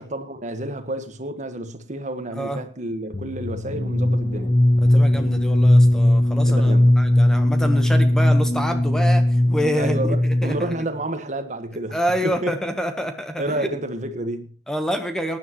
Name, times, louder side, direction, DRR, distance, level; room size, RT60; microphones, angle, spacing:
voice 1, 0.0-4.5 6.5-6.9 9.7-12.5 13.4-14.5, right 1 dB, 40° right, 1.5 m, -30 dB
voice 2, 2.3-2.6 4.8-10.7 11.9-13.7 14.7-15.4, equal, 5° left, 1.1 m, -27 dB
sound 1, 3.1-10.8, left 1 dB, 20° left, 0.6 m, -18 dB
19.0 x 10.5 x 3.1 m
head